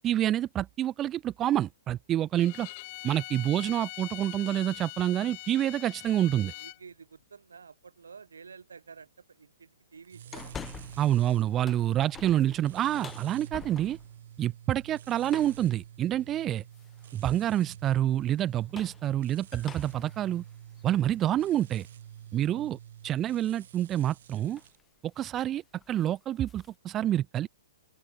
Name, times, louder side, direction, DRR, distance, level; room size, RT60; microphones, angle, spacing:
voice 1, 0.0-2.7 3.0-6.5 11.0-14.0 14.4-16.6 17.1-20.4 20.8-21.9 22.3-22.8 23.0-24.6 25.2-25.6 25.9-27.5, right 12 dB, 25° right, 1.1 m, -27 dB
Bowed string instrument, 2.3-6.8, left 26 dB, 40° left, 0.9 m, -43 dB
voice 2, 6.6-10.6 13.5-13.7 22.5-22.8, right 5 dB, 70° right, 5.7 m, -51 dB
sound 1, 10.0-24.8, right 10 dB, 55° right, 2.2 m, -48 dB
sound 2, 10.3-11.2 11.5-14.2 15.3-15.7 16.7-17.2 18.5-21.9 22.4-22.5 24.0-24.2 24.5-24.8 25.1-25.4 25.7-26.8, left 7 dB, 15° left, 5.1 m, -47 dB
open air
figure-of-eight pair, 115°, 0 cm